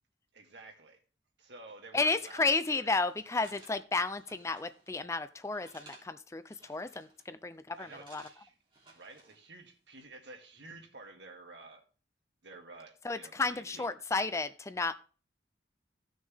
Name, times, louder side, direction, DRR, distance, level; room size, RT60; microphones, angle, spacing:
voice 1, 0.3-1.0 1.4-2.9 7.8-8.6 8.9-11.8 12.4-13.9, right 3 dB, 80° right, 2 dB, 2.1 m, -51 dB
voice 2, 1.9-8.2 13.0-14.9, left 3 dB, 15° left, 12 dB, 0.4 m, -32 dB
sound 1, 2.1-2.6 3.1-4.9 5.2-6.1 6.4-7.3 7.7-9.5 9.8-10.0, right 2 dB, 30° right, 3.1 m, -59 dB
14.5 x 6.3 x 3.5 m, 0.36 s
head